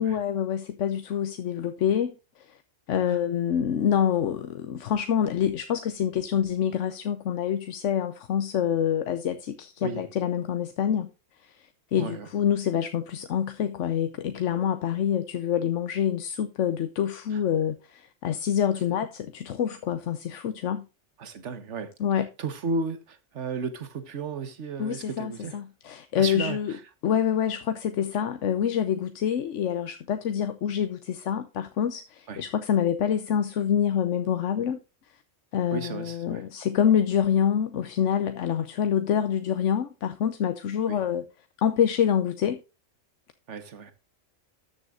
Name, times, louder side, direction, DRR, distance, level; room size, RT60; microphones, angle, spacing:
voice 1, 0.0-2.1 2.5-2.6 2.9-11.1 11.4-20.9 22.0-22.3 24.8-26.7 27.0-34.8 35.5-41.2 41.6-42.6, left 9 dB, 75° left, 1.1 m, -26 dB
voice 2, 12.0-12.3 17.3-17.4 21.2-21.9 22.4-25.6 26.2-26.6 32.3-32.4 35.7-36.4 40.9-41.0 43.5-43.9, right 4 dB, 70° right, 1.5 m, -34 dB
13.5 x 7.2 x 2.5 m
omnidirectional pair, 1.3 m